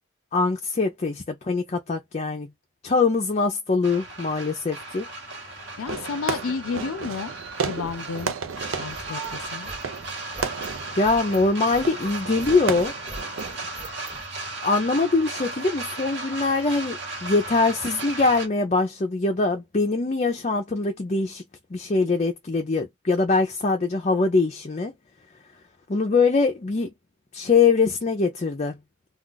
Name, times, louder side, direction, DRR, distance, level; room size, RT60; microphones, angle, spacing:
voice 1, 0.3-2.5 2.8-5.1 11.0-12.9 14.6-21.4 21.7-24.9 25.9-26.9 27.3-28.8, left 3 dB, 35° left, 0.5 m, -23 dB
sound 1, 3.8-18.5, right 2 dB, 55° right, 1.1 m, -36 dB
voice 2, 5.8-7.3 7.7-8.3 8.8-9.7, left 5 dB, 85° left, 0.4 m, -31 dB
Fireworks, 5.9-13.9, right 5 dB, 75° right, 0.6 m, -34 dB
sound 2, 7.4-14.3, right 1 dB, 15° right, 0.7 m, -42 dB
2.4 x 2.3 x 3.8 m
head